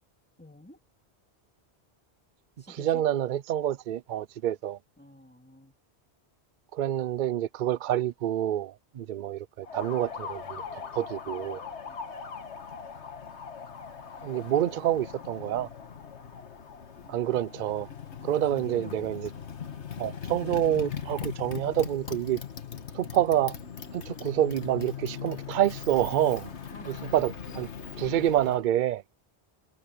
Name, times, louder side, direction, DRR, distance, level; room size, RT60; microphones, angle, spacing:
voice 1, 0.4-0.8 2.6-3.0 5.0-5.8 11.8-12.1 17.0-17.5 18.3-19.1 26.7-27.1, left 1 dB, 10° left, 2.6 m, -50 dB
voice 2, 2.7-4.8 6.7-11.6 14.2-15.7 17.1-17.9 18.2-19.3 20.0-22.4 22.9-23.6 23.9-26.5 26.9-27.7 28.0-29.0, right 12 dB, 55° right, 0.6 m, -27 dB
Motorcycle, 9.6-28.6, left 7 dB, 80° left, 1.7 m, -40 dB
omnidirectional pair, 1.1 m